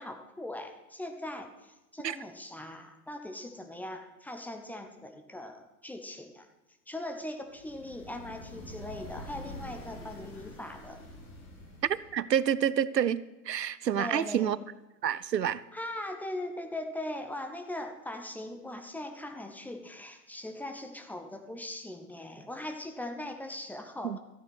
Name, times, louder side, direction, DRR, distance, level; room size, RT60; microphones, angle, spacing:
voice 1, 0.0-6.5 6.9-11.0 14.0-14.7 15.7-24.2, left 1 dB, 5° left, 5 dB, 0.7 m, -40 dB
sound 1, 7.5-12.3, left 1 dB, 25° left, 3.1 m, -46 dB
voice 2, 11.9-14.6 15.0-15.6 24.0-24.2, right 9 dB, 85° right, 18 dB, 0.7 m, -28 dB
13.0 x 8.7 x 6.2 m, 1.0 s
figure-of-eight pair, 110°, 48 cm